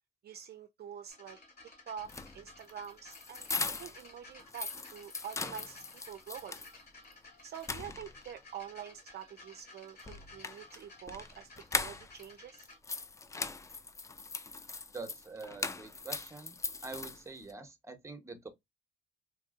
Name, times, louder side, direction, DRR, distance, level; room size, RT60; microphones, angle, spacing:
voice 1, 0.2-1.4 1.9-6.6 7.4-11.5 11.7-12.7, right 8 dB, 55° right, 0.4 m, -46 dB
sound 1, 1.1-12.8 13.7-13.8, left 3 dB, 55° left, 2.2 m, -56 dB
sound 2, 2.0-4.1 4.4-6.7 7.1-7.2 7.5-8.4 10.0-12.3 12.6-17.5, left 3 dB, 15° left, 0.3 m, -40 dB
voice 2, 14.9-16.6 16.8-18.5, right 3 dB, 15° right, 0.9 m, -45 dB
4.1 x 2.6 x 2.4 m
cardioid pair, 90°, 20 cm